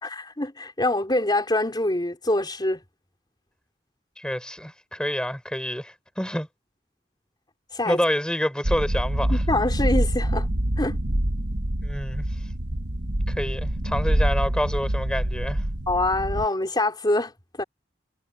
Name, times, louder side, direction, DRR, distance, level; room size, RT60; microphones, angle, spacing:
voice 1, 0.0-2.8 7.7-8.0 9.3-10.5 10.8-11.0 15.9-17.3 17.6-17.7, left 2 dB, 25° left, 3.9 m, -25 dB
voice 2, 4.2-6.5 7.8-9.4 11.8-12.3 13.3-15.6, equal, 5° left, 4.4 m, -28 dB
sound 1, 8.6-16.5, right 1 dB, 85° right, 1.7 m, -25 dB
head